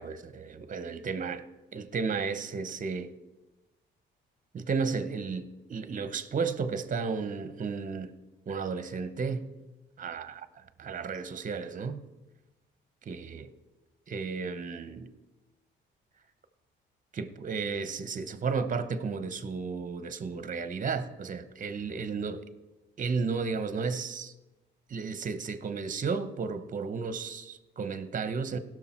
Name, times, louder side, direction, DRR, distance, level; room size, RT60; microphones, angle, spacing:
voice 1, 0.0-1.4 1.7-3.1 4.5-8.1 8.5-9.5 10.0-10.5 10.8-12.0 13.1-13.5 14.1-15.1 17.1-22.5 23.0-24.3 24.9-28.6, right 5 dB, 40° right, 0.9 m, -33 dB
16.5 x 6.4 x 4.4 m
cardioid pair, 90°, 20 cm